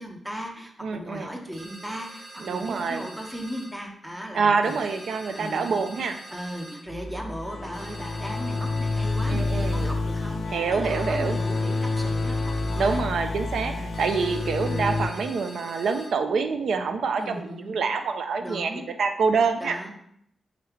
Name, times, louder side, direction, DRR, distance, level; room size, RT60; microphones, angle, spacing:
voice 1, 0.0-4.7 5.3-5.8 6.3-13.0 13.5-13.9 17.2-17.8 18.4-18.9 19.6-19.9, equal, 10° right, 2 dB, 0.6 m, -37 dB
voice 2, 0.8-1.4 2.4-3.0 4.3-6.2 9.3-9.9 10.5-11.4 12.7-19.8, right 5 dB, 75° right, 7 dB, 0.4 m, -26 dB
sound 1, 1.5-3.7 4.6-6.8 7.7-9.9 10.8-13.0 13.9-16.1, right 1 dB, 45° right, 0.9 m, -45 dB
sound 2, 6.9-15.1, left 3 dB, 60° left, 0.5 m, -28 dB
3.6 x 3.1 x 3.4 m, 0.72 s
wide cardioid pair, 145°, 0 cm